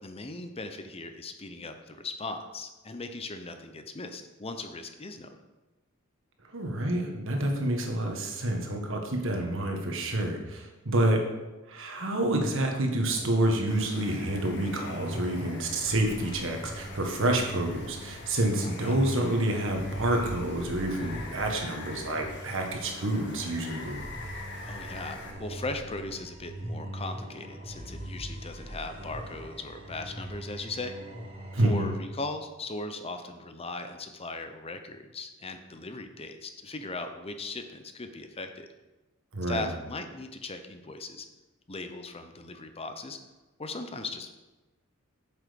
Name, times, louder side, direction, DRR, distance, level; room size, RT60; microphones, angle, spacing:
voice 1, 0.0-5.4 17.4-17.5 18.6-19.0 24.6-30.9 31.6-38.7 39.5-41.3 41.7-43.2 43.6-44.3, left 2 dB, 30° left, 7 dB, 0.7 m, -38 dB
voice 2, 6.5-11.3 11.7-24.0 31.5-31.9 39.3-39.7, right 1 dB, 65° right, 2 dB, 1.6 m, -28 dB
sound 1, 13.1-32.0, equal, 30° right, 1.9 m, -41 dB
Water, 13.7-25.3, left 3 dB, 55° left, 1.5 m, -45 dB
7.9 x 7.6 x 5.3 m, 1.1 s
head